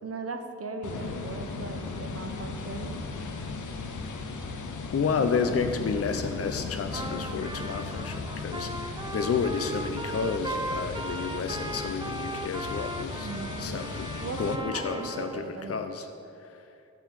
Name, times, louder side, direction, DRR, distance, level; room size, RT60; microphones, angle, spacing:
voice 1, 0.0-3.0 13.2-13.9 14.2-15.9, right 4 dB, 55° right, 6 dB, 0.8 m, -38 dB
sound 1, 0.8-14.6, left 4 dB, 90° left, 0.7 m, -37 dB
voice 2, 4.9-8.7 9.1-13.3 13.6-14.1 14.4-16.1 16.4-16.5, left 5 dB, 55° left, 7 dB, 0.5 m, -30 dB
Trumpet, 6.9-15.4, right 1 dB, 15° right, 0.5 m, -38 dB
11.5 x 4.0 x 7.3 m, 2.7 s
cardioid pair, 55°, 29 cm